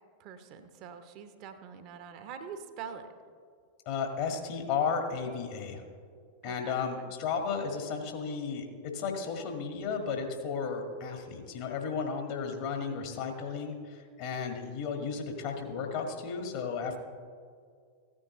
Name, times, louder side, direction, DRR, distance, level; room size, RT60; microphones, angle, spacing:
voice 1, 0.2-3.1 6.4-7.1, right 7 dB, 40° right, 9 dB, 0.8 m, -45 dB
voice 2, 3.8-5.8 6.4-17.0, left 5 dB, 50° left, 4 dB, 1.6 m, -34 dB
15.0 x 9.6 x 3.0 m, 2.1 s
figure-of-eight pair, 90°, 0 cm